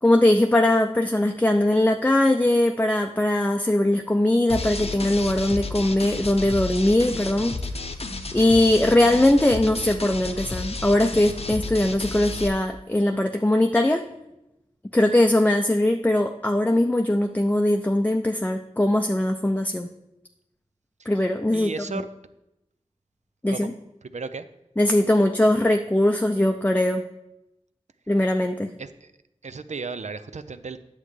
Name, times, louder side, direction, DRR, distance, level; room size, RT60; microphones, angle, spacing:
voice 1, 0.0-7.6 8.3-14.0 14.9-19.9 21.1-21.7 23.4-23.7 24.8-27.0 28.1-28.7, left 1 dB, 15° left, 4 dB, 0.5 m, -21 dB
sound 1, 4.5-12.5, left 3 dB, 55° left, 0.7 m, -32 dB
voice 2, 21.5-22.1 23.5-23.7 24.0-24.5 28.8-29.1 29.4-30.8, right 4 dB, 75° right, 11 dB, 0.5 m, -34 dB
10.0 x 7.2 x 3.2 m, 0.87 s
wide cardioid pair, 50°, 12 cm